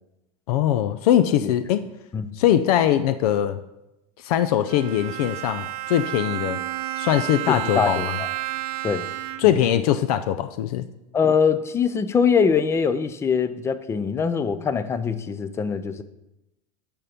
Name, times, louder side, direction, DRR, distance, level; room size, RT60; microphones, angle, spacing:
voice 1, 0.5-1.8 2.3-3.6 4.2-6.6 7.0-8.2 9.4-10.9, left 11 dB, 75° left, 11 dB, 0.5 m, -21 dB
Bowed string instrument, 4.7-9.7, right 15 dB, 70° right, 0.6 m, -31 dB
voice 2, 7.5-8.3 8.8-9.1 9.4-9.6 11.1-16.0, left 6 dB, 15° left, 12 dB, 0.4 m, -23 dB
10.0 x 3.7 x 6.7 m, 0.90 s
supercardioid pair, 150°, 19 cm